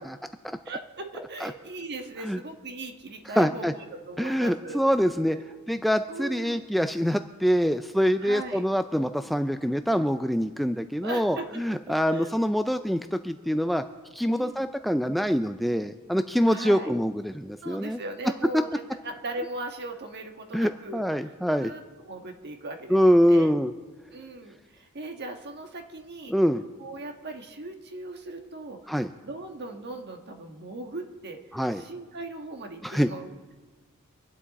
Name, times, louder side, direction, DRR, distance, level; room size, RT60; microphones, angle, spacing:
voice 1, 0.6-4.8 5.3-5.6 6.1-6.6 8.2-8.6 11.0-12.4 14.3-14.7 16.5-16.9 17.6-21.3 21.6-23.5 24.1-26.3 26.8-28.9 29.2-31.4 31.7-33.5, right 2 dB, 50° right, 4 dB, 1.4 m, -39 dB
voice 2, 3.4-3.7 4.2-5.4 5.7-13.8 14.1-18.0 20.5-21.7 22.9-23.7 26.3-26.6 28.9-29.1 31.5-31.8 32.8-33.1, equal, ahead, 8 dB, 0.3 m, -25 dB
25.0 x 9.8 x 4.1 m, 1.3 s
head